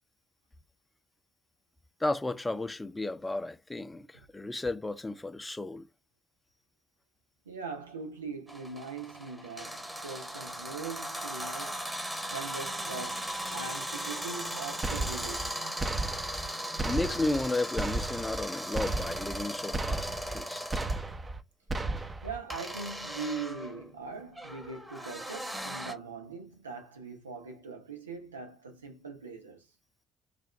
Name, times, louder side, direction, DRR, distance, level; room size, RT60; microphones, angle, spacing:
voice 1, 2.0-5.9 16.8-20.8, left 2 dB, 15° left, 0.5 m, -33 dB
voice 2, 7.5-15.6 22.2-29.7, right 4 dB, 85° right, 0.5 m, -41 dB
sound 1, 8.5-21.0 22.5-25.9, equal, 10° right, 1.0 m, -38 dB
sound 2, 14.8-15.5 15.8-16.5 16.8-17.5 17.8-18.5 18.7-19.4 19.7-20.4 20.7-21.4 21.7-22.4, right 2 dB, 25° right, 0.6 m, -34 dB
3.4 x 2.5 x 4.2 m
figure-of-eight pair, 45°, 0 cm